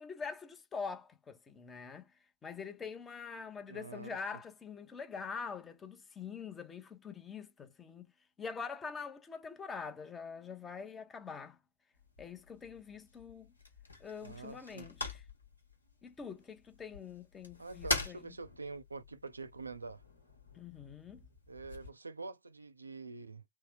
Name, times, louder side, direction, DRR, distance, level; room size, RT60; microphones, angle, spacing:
voice 1, 0.0-2.1 2.4-8.1 8.4-11.6 12.2-13.5 14.0-15.2 16.0-18.2 20.5-21.2, left 5 dB, 20° left, 0.7 m, -44 dB
voice 2, 3.7-4.1 14.2-14.9 17.6-20.0 21.5-23.4, right 3 dB, 80° right, 0.4 m, -46 dB
sound 1, 11.9-21.9, left 2 dB, 80° left, 0.9 m, -44 dB
3.2 x 2.1 x 3.5 m
figure-of-eight pair, 90°, 0 cm